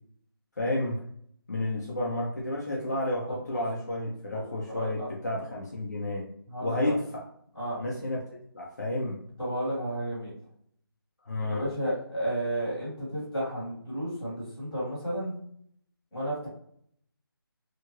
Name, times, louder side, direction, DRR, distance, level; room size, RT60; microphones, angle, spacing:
voice 1, 0.6-1.0 1.5-6.3 6.6-7.2 7.8-9.2 11.2-11.6, left 1 dB, 45° left, -3 dB, 0.5 m, -31 dB
voice 2, 3.3-3.6 4.3-4.4 4.7-5.1 6.5-6.9 7.5-7.8 9.4-10.4 11.5-15.4 16.1-16.5, right 1 dB, 5° left, -16 dB, 1.1 m, -32 dB
2.8 x 2.4 x 2.9 m, 0.66 s
figure-of-eight pair, 180°, 13 cm